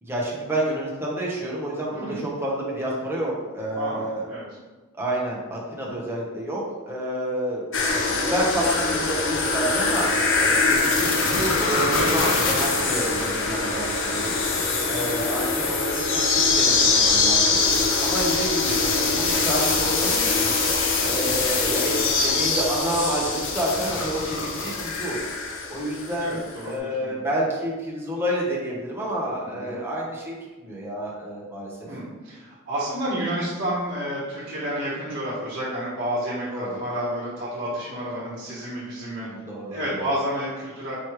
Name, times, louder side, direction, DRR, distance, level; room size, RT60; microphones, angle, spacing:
voice 1, 0.0-4.2 4.9-7.6 8.1-10.1 10.6-14.3 14.9-17.6 18.0-20.6 21.0-25.2 25.7-31.7 36.5-36.8 39.2-40.1, right 1 dB, 10° right, -5 dB, 0.9 m, -29 dB
voice 2, 1.9-2.2 3.7-4.4 10.2-10.6 14.8-15.0 20.9-21.2 26.2-27.1 29.4-29.8 31.8-39.3 39.7-40.9, right 1 dB, 50° right, -8 dB, 1.1 m, -30 dB
sound 1, 7.7-26.3 26.5-26.6, left 3 dB, 65° left, 0.6 m, -23 dB
4.6 x 3.1 x 3.1 m, 1.3 s
head